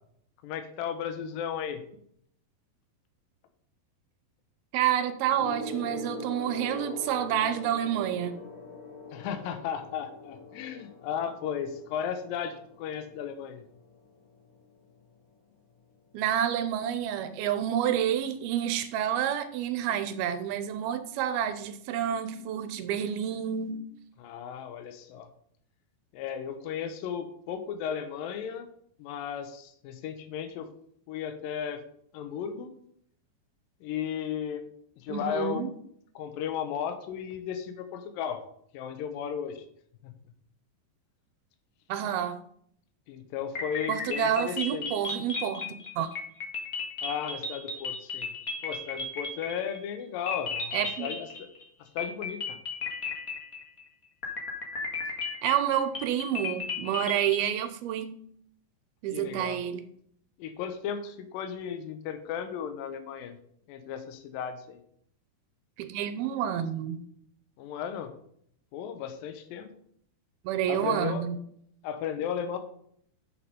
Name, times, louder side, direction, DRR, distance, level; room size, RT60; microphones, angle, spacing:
voice 1, 0.4-1.8 9.1-13.6 24.2-25.3 26.1-28.7 29.0-30.7 31.1-31.8 32.1-32.7 33.8-34.6 35.0-35.6 36.2-38.4 38.7-39.6 40.0-40.1 43.1-44.8 47.0-48.3 48.6-51.5 51.8-52.6 59.1-59.6 60.4-63.4 63.7-64.8 67.6-68.2 68.7-69.7 70.7-71.2 71.8-72.6, left 8 dB, 75° left, 8 dB, 2.6 m, -35 dB
voice 2, 4.7-8.4 16.1-23.9 35.1-35.7 41.9-42.4 43.9-45.7 46.0-46.1 50.7-51.1 55.4-58.2 59.0-59.8 65.8-67.0 70.4-71.4, right 10 dB, 85° right, 11 dB, 2.7 m, -29 dB
Gong, 5.4-15.1 16.1-16.4, left 2 dB, 90° left, 3.8 m, -43 dB
sound 1, 43.5-50.0 50.3-51.6 52.0-53.8 54.2-57.6, left 4 dB, 40° left, 1.2 m, -35 dB
8.2 x 6.7 x 5.3 m, 0.66 s
omnidirectional pair, 4.4 m